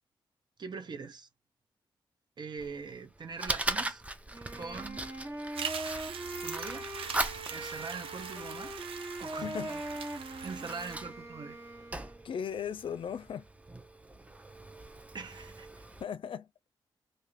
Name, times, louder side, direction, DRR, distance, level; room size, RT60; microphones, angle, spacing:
voice 1, 0.6-1.3 2.4-4.0 4.5-5.1 6.4-6.9 7.5-8.7 9.2-9.8 10.4-11.6 15.1-15.7, right 5 dB, 55° right, 0.8 m, -42 dB
Fire, 2.6-16.0, right 1 dB, 15° right, 0.6 m, -40 dB
Wind instrument woodwind instrument, 4.3-12.2, right 1 dB, 30° right, 1.2 m, -41 dB
sound 1, 5.5-11.0, right 7 dB, 90° right, 0.6 m, -42 dB
voice 2, 9.4-9.7 12.2-13.5 16.0-16.5, left 8 dB, 70° left, 0.5 m, -37 dB
2.7 x 2.5 x 3.2 m
cardioid pair, 70°, 9 cm